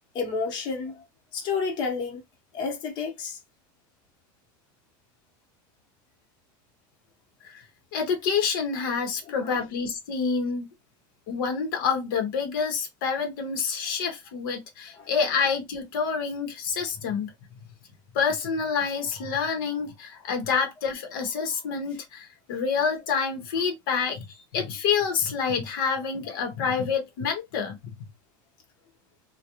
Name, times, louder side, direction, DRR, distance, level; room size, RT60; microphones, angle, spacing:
voice 1, 0.1-1.0 1.3-2.2 2.5-3.4 9.4-9.6 15.0-15.1, left 5 dB, 45° left, 0.9 m, -30 dB
voice 2, 7.9-10.7 11.3-17.3 18.1-27.8, left 6 dB, 80° left, 0.9 m, -27 dB
2.3 x 2.2 x 2.9 m
supercardioid pair, 135°, 11 cm